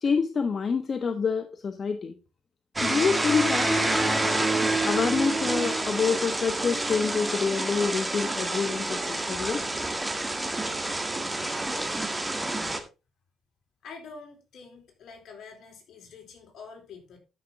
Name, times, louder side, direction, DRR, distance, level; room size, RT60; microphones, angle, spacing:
voice 1, 0.0-2.1 2.8-3.7 4.8-9.6, left 5 dB, 45° left, 7 dB, 1.1 m, -27 dB
sound 1, 2.8-12.8, right 2 dB, 15° right, 1.9 m, -28 dB
voice 2, 13.8-17.2, left 5 dB, 70° left, 1 dB, 4.3 m, -46 dB
13.0 x 6.0 x 3.7 m, 0.29 s
cardioid pair, 90°, 0 cm